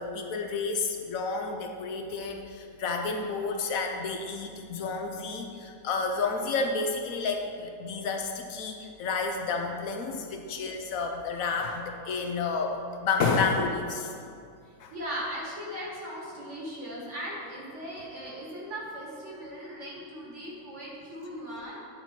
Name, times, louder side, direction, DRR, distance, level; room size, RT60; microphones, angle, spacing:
voice 1, 0.0-14.2 14.8-14.9, left 4 dB, 70° left, 3 dB, 1.0 m, -30 dB
voice 2, 14.9-21.8, equal, 50° right, -5 dB, 2.0 m, -38 dB
9.6 x 4.2 x 4.4 m, 2.4 s
omnidirectional pair, 1.6 m